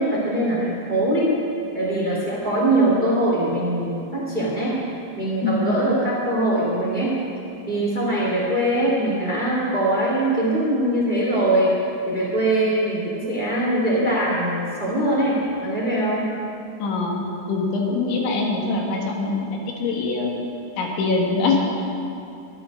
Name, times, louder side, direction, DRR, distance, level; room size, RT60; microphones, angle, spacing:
voice 1, 0.0-1.3 1.7-4.8 5.2-7.2 7.6-11.7 12.0-16.3, right 1 dB, 10° right, -6 dB, 3.3 m, -22 dB
voice 2, 5.4-5.8 16.8-17.1 17.5-19.5 19.8-20.3 20.8-21.7, left 3 dB, 85° left, -1 dB, 4.3 m, -23 dB
23.5 x 13.0 x 3.9 m, 2.7 s
omnidirectional pair, 5.2 m